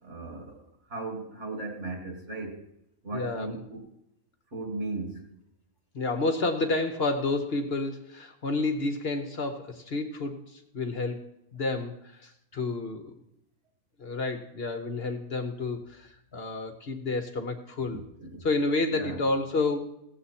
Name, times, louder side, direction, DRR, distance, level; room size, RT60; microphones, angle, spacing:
voice 1, 0.0-2.6 3.0-3.9 4.5-5.3 17.8-18.4 18.9-19.2, right 3 dB, 55° right, 3 dB, 2.1 m, -37 dB
voice 2, 3.1-3.6 5.9-11.2 11.5-13.1 14.0-18.0 18.4-19.9, left 3 dB, 50° left, 5 dB, 1.0 m, -30 dB
17.0 x 7.7 x 4.2 m, 0.82 s
omnidirectional pair, 1.5 m